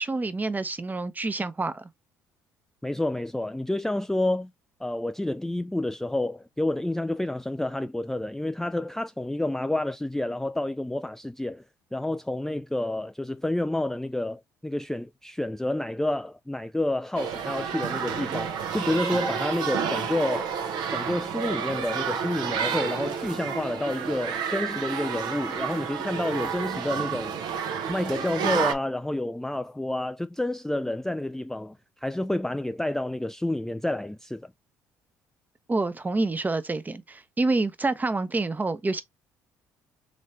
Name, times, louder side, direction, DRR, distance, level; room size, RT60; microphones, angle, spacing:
voice 1, 0.0-1.9 35.7-39.0, right 3 dB, 20° right, 0.8 m, -27 dB
voice 2, 2.8-4.5 4.8-11.6 11.9-20.5 20.9-27.4 27.9-34.5, left 1 dB, 5° left, 0.3 m, -29 dB
sound 1, 17.1-28.7, right 7 dB, 65° right, 0.8 m, -30 dB
4.0 x 3.1 x 3.1 m
hypercardioid pair, 60°, 8 cm